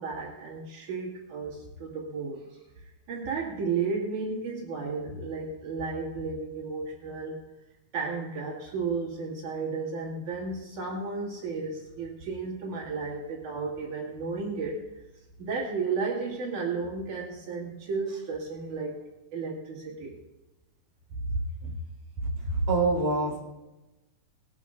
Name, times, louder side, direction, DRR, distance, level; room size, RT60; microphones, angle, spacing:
voice 1, 0.0-7.4 7.9-14.8 15.4-19.0 19.3-20.1 21.2-21.8, right 4 dB, 75° right, -4 dB, 3.7 m, -33 dB
voice 2, 22.2-23.4, right 2 dB, 20° right, -5 dB, 4.9 m, -26 dB
20.0 x 12.0 x 2.6 m, 1.0 s
omnidirectional pair, 3.6 m